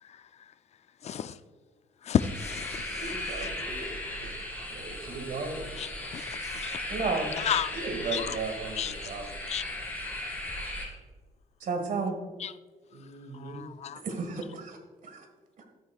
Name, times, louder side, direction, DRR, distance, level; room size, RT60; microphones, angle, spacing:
voice 1, 1.0-1.3 2.1-3.0 3.4-3.5 5.8-5.9 6.1-6.8 7.4-7.7 8.1-8.4 8.8-8.9 9.5-9.6 12.4-12.5 13.4-14.0, left 9 dB, 45° left, 13 dB, 0.4 m, -31 dB
sound 1, 2.2-10.9, left 1 dB, 10° left, 2.5 m, -37 dB
voice 2, 3.0-4.4 4.7-5.7 7.7-9.2 12.9-13.6, right 4 dB, 70° right, 4 dB, 2.0 m, -37 dB
voice 3, 6.9-7.3 11.6-12.1 14.0-14.8 15.0-15.2, right 4 dB, 55° right, 4 dB, 1.7 m, -31 dB
12.5 x 9.2 x 2.4 m, 1.4 s
cardioid pair, 130°, 16 cm